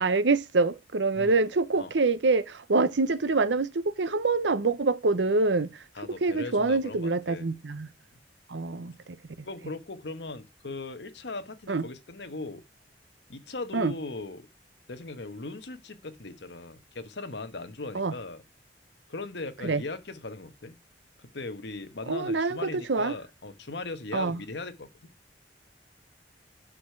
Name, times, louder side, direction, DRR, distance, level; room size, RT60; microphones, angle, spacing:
voice 1, 0.0-5.7 6.2-7.9 8.5-8.9 11.7-11.8 13.7-13.9 17.9-18.1 19.6-19.8 22.1-23.1 24.1-24.4, right 3 dB, 90° right, 0.8 m, -25 dB
voice 2, 5.9-7.5 9.4-12.6 13.3-14.5 14.9-18.4 19.1-20.8 21.2-25.1, left 3 dB, 70° left, 1.2 m, -39 dB
9.9 x 6.6 x 4.6 m
head